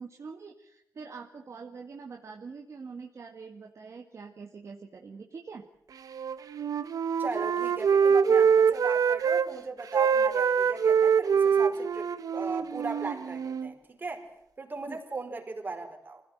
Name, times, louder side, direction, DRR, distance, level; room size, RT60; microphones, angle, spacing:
voice 1, 0.0-5.6 14.9-15.0, right 5 dB, 50° right, 3 dB, 1.8 m, -44 dB
Wind instrument woodwind instrument, 6.1-9.5 9.8-13.7, right 6 dB, 70° right, 1.3 m, -24 dB
voice 2, 7.2-14.3 14.6-16.2, right 3 dB, 30° right, 3 dB, 4.8 m, -38 dB
26.0 x 16.5 x 9.2 m, 0.76 s
wide cardioid pair, 140°, 6 cm